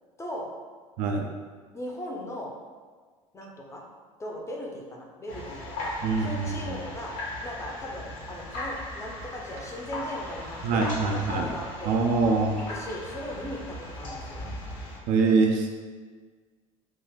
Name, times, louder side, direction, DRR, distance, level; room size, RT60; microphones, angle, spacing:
voice 1, 1.7-2.5 3.3-3.8 4.2-6.0 6.2-7.1 7.4-12.0 12.7-14.4, left 1 dB, 15° left, -1 dB, 0.5 m, -38 dB
sound 1, 5.3-15.0, left 1 dB, 65° left, 0.9 m, -38 dB
voice 2, 6.0-6.7 10.6-11.5 11.9-12.6 15.1-15.7, right 4 dB, 50° right, 2 dB, 0.4 m, -24 dB
2.7 x 2.3 x 3.4 m, 1.5 s
figure-of-eight pair, 65°, 17 cm